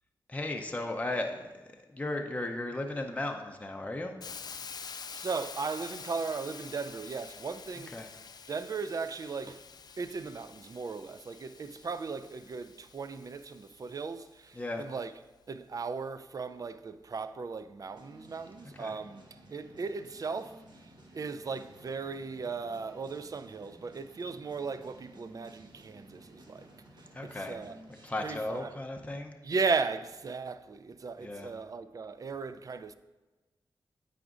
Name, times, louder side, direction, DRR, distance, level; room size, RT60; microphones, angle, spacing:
voice 1, 0.3-4.2 7.9-8.1 14.5-14.9 18.8-19.0 27.1-27.6 28.0-29.3 31.2-31.5, left 2 dB, 15° left, 0.6 m, -36 dB
Hiss, 4.2-14.1, left 6 dB, 55° left, 0.3 m, -47 dB
voice 2, 4.8-8.1 8.5-9.7 10.0-15.1 15.5-27.8 28.2-28.8 29.4-32.9, right 4 dB, 45° right, 0.3 m, -37 dB
sound 1, 17.9-28.7, right 1 dB, 65° right, 1.0 m, -55 dB
9.0 x 4.9 x 2.5 m
cardioid pair, 55°, 8 cm